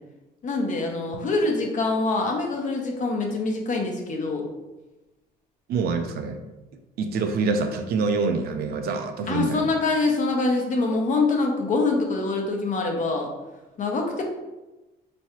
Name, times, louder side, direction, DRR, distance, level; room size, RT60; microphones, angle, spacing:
voice 1, 0.4-4.4 9.3-13.3 13.8-14.2, left 3 dB, 50° left, 1 dB, 0.9 m, -24 dB
voice 2, 5.7-6.4 7.0-9.7, right 4 dB, 65° right, 6 dB, 0.5 m, -26 dB
4.6 x 3.1 x 3.0 m, 1.1 s
cardioid pair, 110°, 17 cm